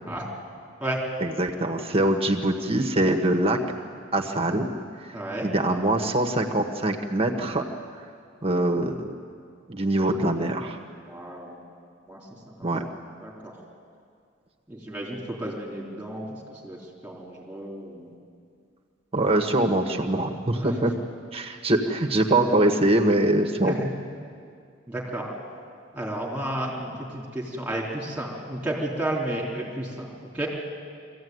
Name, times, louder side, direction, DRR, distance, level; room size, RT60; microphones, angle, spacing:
voice 1, 1.2-3.6 4.1-4.7 5.4-7.6 8.4-9.2 9.7-10.8 12.6-12.8 19.1-20.9 21.3-23.9, right 1 dB, 30° right, 3 dB, 1.3 m, -23 dB
voice 2, 5.1-5.5 11.1-11.6 12.1-12.7 13.2-13.6 14.7-18.1 20.5-20.8 23.6-23.9 24.9-25.3 25.9-30.5, right 1 dB, 5° right, -4 dB, 3.6 m, -32 dB
23.5 x 15.5 x 9.4 m, 2.3 s
head